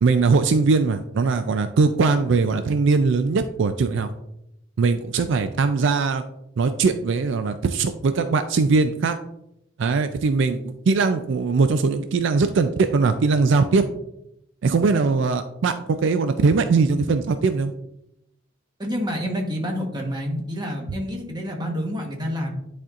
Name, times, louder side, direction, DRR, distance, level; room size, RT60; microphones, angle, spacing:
voice 1, 0.0-4.1 4.8-6.2 6.6-9.2 9.8-13.8 14.6-17.7, right 4 dB, 65° right, 8 dB, 0.4 m, -20 dB
voice 2, 18.8-22.5, equal, 20° right, 1 dB, 1.1 m, -28 dB
10.5 x 4.3 x 2.5 m, 0.83 s
head